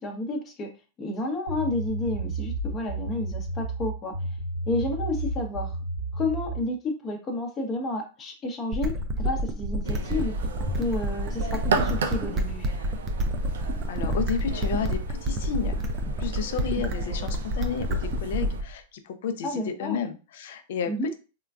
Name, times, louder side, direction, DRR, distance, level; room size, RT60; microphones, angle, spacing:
voice 1, 0.0-0.7 1.0-4.1 4.7-5.7 6.1-10.3 10.7-12.7 19.4-20.0 20.9-21.1, left 2 dB, 25° left, 2 dB, 0.8 m, -31 dB
sound 1, 1.5-6.7, right 2 dB, 90° left, 0.9 m, -32 dB
sound 2, 8.7-18.7, right 1 dB, 30° right, 0.5 m, -28 dB
sound 3, 9.8-18.6, right 4 dB, 80° right, 0.5 m, -35 dB
voice 2, 13.9-15.8 16.2-21.1, left 7 dB, 65° left, 8 dB, 0.5 m, -32 dB
3.7 x 2.3 x 2.3 m, 0.33 s
hypercardioid pair, 115°, 0 cm